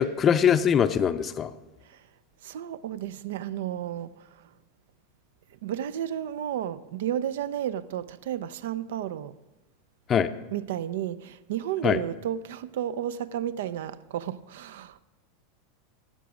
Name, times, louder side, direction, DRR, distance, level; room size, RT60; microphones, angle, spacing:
voice 1, 0.0-1.5 10.1-10.3 11.8-12.0, left 8 dB, 30° left, 0.5 m, -22 dB
voice 2, 2.4-4.4 5.6-9.4 10.5-15.0, right 10 dB, 80° right, 0.4 m, -32 dB
13.0 x 7.5 x 5.0 m
supercardioid pair, 125°, 0 cm